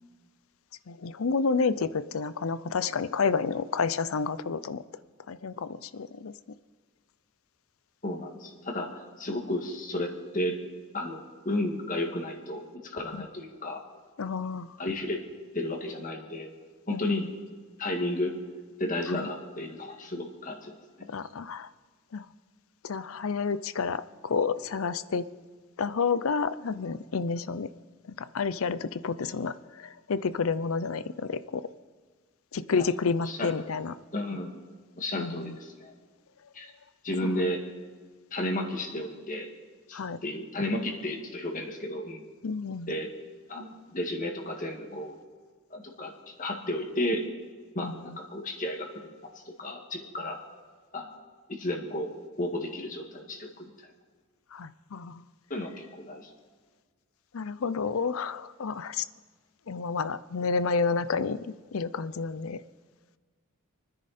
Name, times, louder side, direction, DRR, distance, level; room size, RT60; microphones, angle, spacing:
voice 1, 0.9-4.8 5.3-6.3 13.1-13.2 14.2-14.7 16.9-17.3 19.1-19.3 21.1-21.7 22.1-22.2 22.8-25.2 25.8-27.7 28.2-31.6 32.5-33.9 35.2-35.6 37.2-37.3 39.9-40.2 42.4-42.9 47.8-47.9 54.5-55.2 57.3-59.0 59.7-62.6, left 5 dB, 70° left, 16 dB, 0.5 m, -30 dB
voice 2, 8.0-10.6 10.9-13.8 14.8-15.2 15.5-16.5 16.9-17.3 17.8-18.4 18.8-21.1 29.2-29.4 32.7-32.9 33.2-33.5 34.1-34.6 35.0-35.9 36.5-36.7 37.0-37.6 38.3-39.5 39.9-42.2 42.9-43.1 43.5-45.2 45.7-47.2 47.8-49.1 49.5-50.4 50.9-51.1 51.5-52.1 52.4-53.7 55.5-56.3, left 1 dB, 35° left, 3 dB, 1.9 m, -33 dB
28.5 x 10.0 x 4.3 m, 1.5 s
head